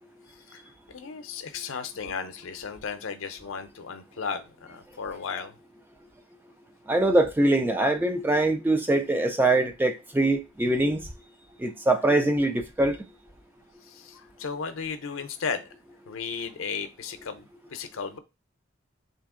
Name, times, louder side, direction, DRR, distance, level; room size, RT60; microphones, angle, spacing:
voice 1, 0.5-5.6 13.8-15.6 16.1-18.2, left 5 dB, 85° left, 0.6 m, -35 dB
voice 2, 6.9-11.1 11.6-13.0, right 2 dB, 10° right, 0.3 m, -23 dB
3.4 x 2.8 x 3.6 m
head